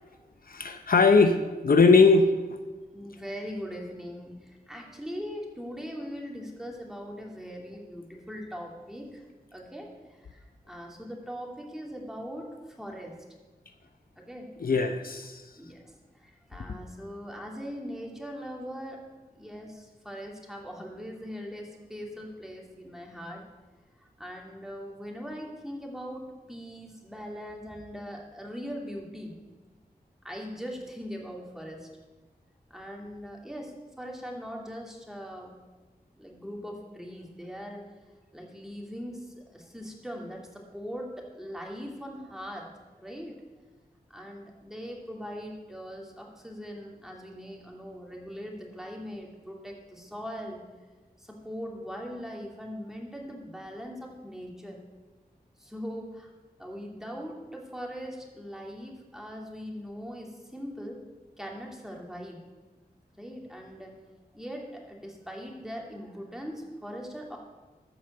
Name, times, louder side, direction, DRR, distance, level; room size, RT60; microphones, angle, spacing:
voice 1, 0.5-2.3 14.6-15.4 16.7-16.8, left 4 dB, 65° left, 7 dB, 0.7 m, -20 dB
voice 2, 2.9-9.2 9.5-9.9 10.3-12.5 12.8-13.1 14.2-14.5 15.6-15.9 16.2-19.0 19.3-23.4 24.0-29.3 30.2-31.9 32.7-33.7 34.0-35.5 36.1-37.8 38.3-42.7 43.0-43.3 44.1-50.6 51.2-54.8 55.6-56.3 56.6-61.0 61.4-62.4 63.2-64.0 64.3-67.4, equal, 5° right, -1 dB, 2.6 m, -40 dB
13.5 x 5.1 x 6.7 m, 1.2 s
cardioid pair, 50°, 16 cm